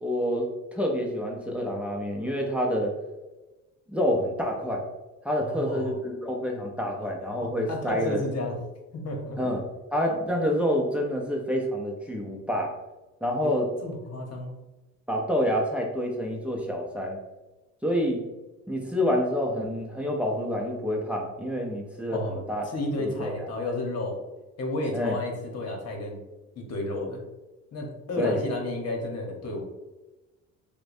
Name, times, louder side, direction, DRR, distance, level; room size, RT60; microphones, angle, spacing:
voice 1, 0.0-2.9 3.9-4.8 5.2-8.2 9.4-9.6 9.9-12.7 13.2-13.7 15.1-17.2 17.8-18.2 18.7-22.6 23.0-23.7 24.9-25.2 28.2-28.4, equal, 5° right, -1 dB, 0.7 m, -28 dB
voice 2, 5.4-6.0 7.4-8.5 8.9-9.4 13.4-13.5 13.8-14.5 22.1-24.2 24.6-26.2 26.6-27.2 27.7-29.6, left 2 dB, 55° left, 1 dB, 1.1 m, -32 dB
6.2 x 2.3 x 2.6 m, 1.1 s
supercardioid pair, 85°, 30 cm